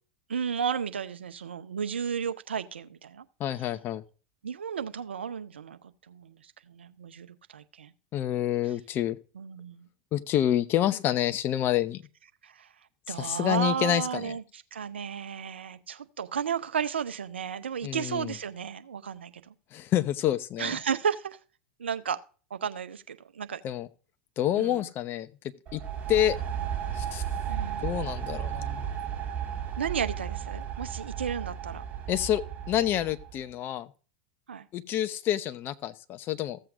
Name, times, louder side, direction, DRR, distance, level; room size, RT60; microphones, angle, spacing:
voice 1, 0.3-3.2 4.4-7.9 9.4-9.9 12.4-12.7 13.1-19.5 20.6-21.4 21.8-22.2 22.5-23.6 24.6-24.9 27.5-27.9 29.8-31.8 34.5-34.7, right 7 dB, 80° right, 0.7 m, -33 dB
voice 2, 3.4-4.0 8.1-9.2 10.1-12.0 13.2-14.3 17.8-18.3 19.7-20.8 23.6-23.9 24.4-25.3 25.7-25.8 26.1-26.4 26.9-27.2 27.8-28.9 32.1-32.4 32.7-33.9 34.7-36.6, left 12 dB, 35° left, 0.8 m, -28 dB
sound 1, 25.7-33.4, right 8 dB, 30° right, 1.9 m, -34 dB
15.0 x 7.7 x 2.5 m
hypercardioid pair, 90°, 6 cm